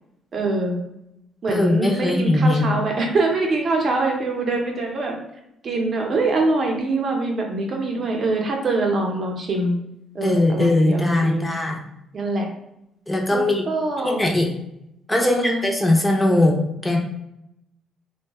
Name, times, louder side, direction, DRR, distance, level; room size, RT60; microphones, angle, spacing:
voice 1, 0.3-0.8 1.4-5.2 5.6-9.7 10.1-11.4 12.1-12.5 13.3-14.2 15.2-15.6, right 2 dB, 45° right, 1 dB, 0.7 m, -24 dB
voice 2, 1.5-2.6 10.2-11.8 13.1-13.6 14.0-14.5 15.1-17.0, left 1 dB, 10° left, 1 dB, 0.6 m, -20 dB
2.7 x 2.2 x 2.9 m, 0.81 s
cardioid pair, 100°, 0 cm